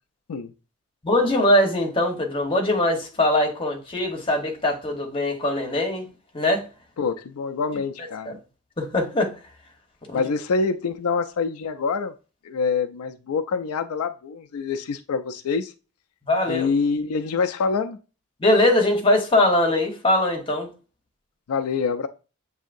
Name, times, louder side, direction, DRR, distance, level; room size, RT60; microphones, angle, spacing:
voice 1, 1.0-6.1 6.3-6.6 8.3-8.4 8.8-9.3 10.1-10.2 16.3-16.7 18.4-20.7, left 1 dB, 25° left, 1.0 m, -21 dB
voice 2, 7.0-8.4 10.1-12.1 12.4-15.7 16.5-18.0 21.5-22.1, left 5 dB, 85° left, 0.4 m, -26 dB
7.2 x 2.7 x 2.5 m
head